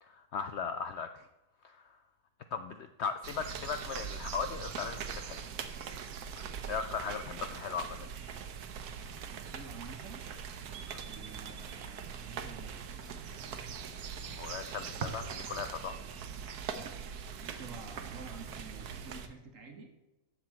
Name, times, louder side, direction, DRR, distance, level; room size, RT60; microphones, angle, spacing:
voice 1, 0.0-1.3 1.6-2.0 2.5-5.4 6.4-8.1 10.9-11.0 14.3-16.0, left 6 dB, 70° left, 9 dB, 0.6 m, -38 dB
sound 1, 3.2-19.3, right 7 dB, 80° right, 1.3 m, -42 dB
voice 2, 9.3-10.2 11.0-12.8 16.7-16.9 17.4-19.9, right 4 dB, 55° right, 4 dB, 1.7 m, -50 dB
7.6 x 6.9 x 7.3 m, 1.0 s
omnidirectional pair, 1.6 m